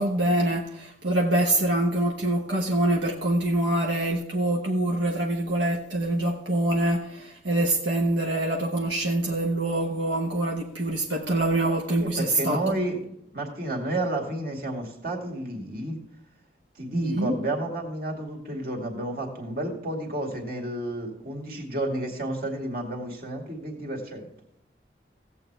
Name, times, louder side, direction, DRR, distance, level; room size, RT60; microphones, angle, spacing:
voice 1, 0.0-12.6 16.9-17.4, right 1 dB, 90° right, 1.1 m, -25 dB
voice 2, 12.0-16.0 16.8-24.3, right 1 dB, 55° right, 2.2 m, -31 dB
16.5 x 7.8 x 3.4 m
head